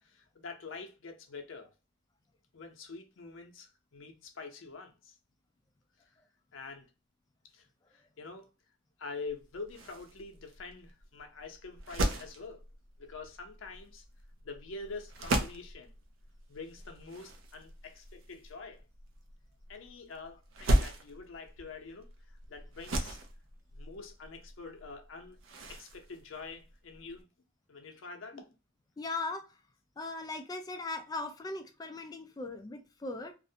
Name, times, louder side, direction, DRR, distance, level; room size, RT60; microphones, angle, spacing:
voice 1, 0.0-1.7 2.5-5.2 6.5-6.9 7.5-8.5 9.0-12.6 13.0-14.0 14.4-15.9 16.5-18.8 19.7-22.1 22.5-23.2 23.7-25.4 25.7-27.3 27.7-28.5, left 4 dB, 80° left, 0.6 m, -46 dB
sound 1, 9.3-27.2, right 1 dB, 85° right, 0.5 m, -37 dB
voice 2, 29.0-29.4 30.0-33.3, left 3 dB, 20° left, 0.3 m, -38 dB
2.5 x 2.1 x 2.6 m
head